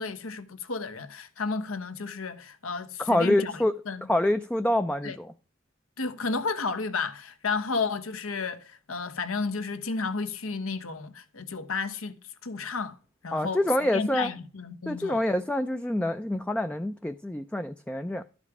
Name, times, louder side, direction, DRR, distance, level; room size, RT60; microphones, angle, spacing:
voice 1, 0.0-4.1 5.0-5.2 6.0-13.0 13.2-13.6 13.9-15.2, left 4 dB, 85° left, 1.1 m, -32 dB
voice 2, 3.0-3.8 4.1-5.3 13.3-14.3 14.9-18.2, left 1 dB, 5° left, 0.3 m, -26 dB
12.5 x 5.3 x 4.8 m
head